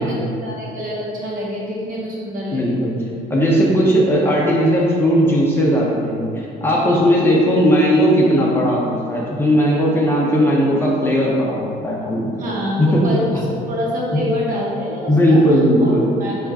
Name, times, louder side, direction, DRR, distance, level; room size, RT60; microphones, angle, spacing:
voice 1, 0.4-2.8 7.2-7.3 12.3-13.2 13.7-15.4 15.8-16.5, left 1 dB, 55° right, -5 dB, 1.0 m, -26 dB
voice 2, 2.5-2.9 3.3-12.3 12.8-13.0 15.1-16.1, equal, 15° left, -5 dB, 0.6 m, -17 dB
4.3 x 2.4 x 3.4 m, 2.5 s
cardioid pair, 110°, 17 cm